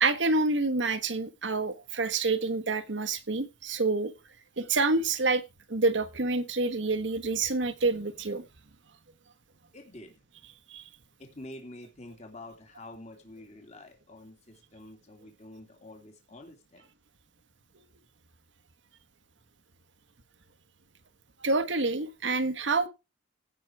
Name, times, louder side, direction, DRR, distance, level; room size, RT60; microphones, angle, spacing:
voice 1, 0.0-4.1 4.6-5.4 5.7-8.4 10.7-10.8 21.4-22.9, right 3 dB, 75° right, 1.3 m, -27 dB
voice 2, 9.7-10.2 11.2-16.9, left 1 dB, 35° left, 2.9 m, -47 dB
16.5 x 6.1 x 4.7 m
head